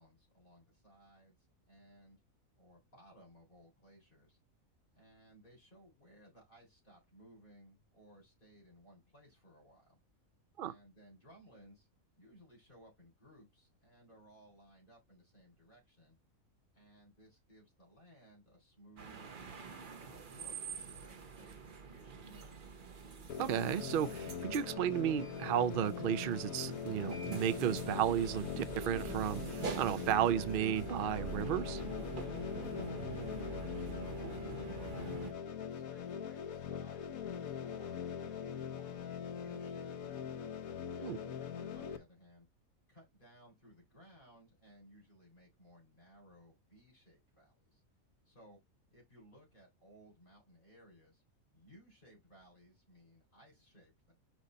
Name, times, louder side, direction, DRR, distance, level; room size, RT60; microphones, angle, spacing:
voice 1, 0.0-1.4 1.7-2.2 2.6-4.4 4.9-10.0 10.6-11.9 12.2-16.2 16.7-20.6 20.9-22.6 33.1-40.4 40.9-42.5 42.9-47.8 48.2-48.6 48.9-51.2 51.5-54.1, equal, 35° left, 4.1 m, -61 dB
sound 1, 19.0-35.3, right 5 dB, 40° right, 1.0 m, -45 dB
sound 2, 23.3-42.0, left 8 dB, 80° left, 1.3 m, -42 dB
voice 2, 23.4-31.8 41.0-41.2, right 10 dB, 65° right, 0.5 m, -33 dB
5.4 x 4.7 x 3.9 m
omnidirectional pair, 1.4 m